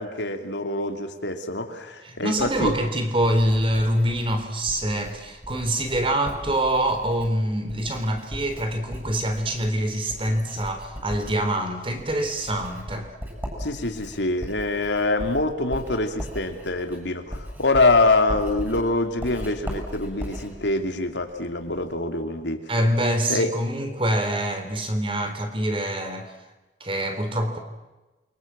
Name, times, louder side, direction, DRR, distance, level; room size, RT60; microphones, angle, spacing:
voice 1, 0.0-2.7 13.6-22.6 23.3-23.5, left 2 dB, 85° left, 6 dB, 3.0 m, -25 dB
voice 2, 2.0-13.1 22.7-26.3 26.8-27.6, right 1 dB, 30° right, 7 dB, 3.7 m, -25 dB
Writing, 2.4-21.9, equal, 10° right, 8.0 m, -39 dB
28.0 x 24.0 x 7.6 m, 1.1 s
head